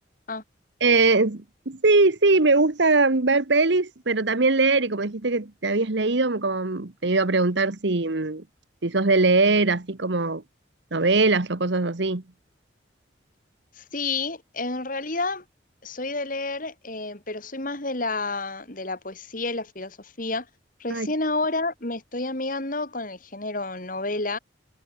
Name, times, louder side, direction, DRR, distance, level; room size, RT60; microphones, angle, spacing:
voice 1, 0.8-8.4 8.8-10.4 10.9-12.2 20.9-21.1, right 3 dB, 65° right, 1.3 m, -21 dB
voice 2, 13.7-15.4 15.8-20.5 20.8-24.4, left 3 dB, 45° left, 3.3 m, -30 dB
head